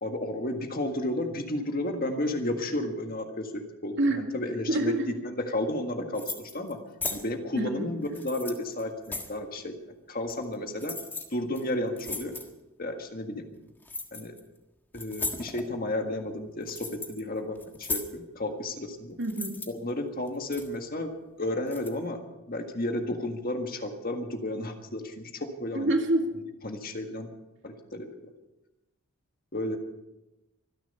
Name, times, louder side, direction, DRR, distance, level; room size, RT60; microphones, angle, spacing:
voice 1, 0.0-4.9 5.2-6.8 7.1-9.7 10.1-10.9 11.3-12.3 12.8-13.4 14.1-14.3 14.9-19.2 19.7-21.1 21.4-22.2 22.5-25.9 26.6-27.3 27.6-28.1 29.5-29.8, left 1 dB, 40° left, 5 dB, 1.7 m, -32 dB
voice 2, 4.7-5.1 7.6-7.9 19.2-19.6 25.7-26.3, right 1 dB, 55° right, 3 dB, 2.4 m, -26 dB
sound 1, 6.1-6.7 7.0-7.2 8.1-9.4 10.3-10.5 10.8-11.2 11.6-11.7 12.0-12.5 13.8-14.4 14.9-15.7 16.3-17.2 17.6-18.1 19.2-19.7 20.3-20.8 21.7-21.9, left 3 dB, 10° left, 1.5 m, -36 dB
24.5 x 10.5 x 5.5 m, 0.99 s
head